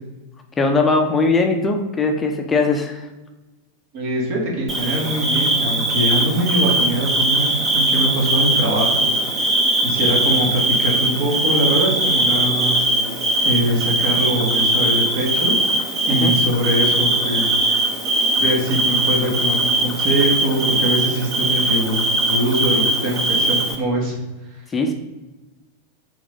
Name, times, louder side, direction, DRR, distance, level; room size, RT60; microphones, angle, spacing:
voice 1, 0.6-3.1 16.1-16.3 24.7-24.9, left 3 dB, 15° left, 3 dB, 0.7 m, -20 dB
voice 2, 3.9-9.5 9.8-12.8 13.4-17.5 18.4-24.2 24.5-24.6, right 1 dB, 45° right, -1 dB, 2.1 m, -22 dB
Bird / Cricket, 4.7-23.8, right 1 dB, 20° right, 1.2 m, -20 dB
5.0 x 4.0 x 5.3 m, 1.1 s
figure-of-eight pair, 90°, 0 cm